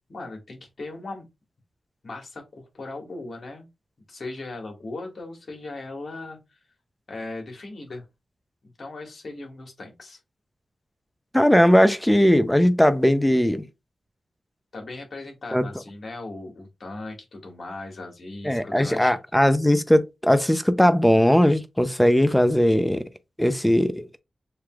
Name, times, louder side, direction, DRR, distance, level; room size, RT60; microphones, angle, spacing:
voice 1, 0.1-1.3 2.0-3.7 4.1-6.6 7.1-8.1 8.6-10.2 14.7-19.2, left 2 dB, 65° left, 2.0 m, -38 dB
voice 2, 11.3-13.6 15.5-15.6 18.4-23.0 23.4-24.1, equal, 10° left, 0.7 m, -19 dB
6.7 x 2.9 x 2.4 m
cardioid pair, 45°, 0 cm